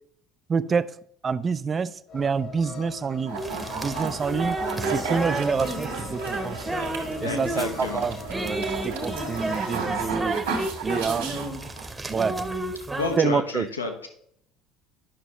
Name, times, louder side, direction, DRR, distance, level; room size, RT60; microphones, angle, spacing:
voice 1, 0.5-0.9 1.2-3.4 3.8-6.7 7.2-10.4 10.8-11.4 12.1-12.4 13.2-13.7, right 5 dB, 30° right, 15 dB, 0.4 m, -27 dB
sound 1, 2.1-10.1, left 5 dB, 55° left, 1.3 m, -40 dB
sound 2, 3.3-11.9, right 5 dB, 75° right, 1.5 m, -34 dB
sound 3, 3.4-13.2, right 2 dB, 15° right, 0.9 m, -32 dB
voice 2, 7.2-8.0 13.0-14.1, left 3 dB, 85° left, 5 dB, 0.9 m, -30 dB
9.9 x 6.0 x 3.0 m, 0.70 s
figure-of-eight pair, 60°, 0 cm